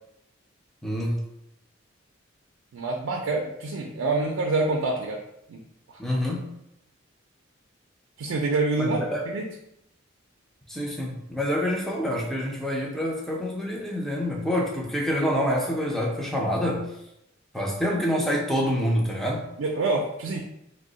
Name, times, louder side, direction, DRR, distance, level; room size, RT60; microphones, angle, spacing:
voice 1, 0.8-1.2 6.0-6.5 8.8-9.2 10.7-16.9 17.5-19.5, equal, ahead, -1 dB, 0.4 m, -27 dB
voice 2, 2.7-5.2 5.5-5.6 5.9-6.0 8.2-9.5 19.6-20.4, right 3 dB, 85° right, 1 dB, 0.4 m, -26 dB
2.9 x 2.0 x 3.7 m, 0.81 s
head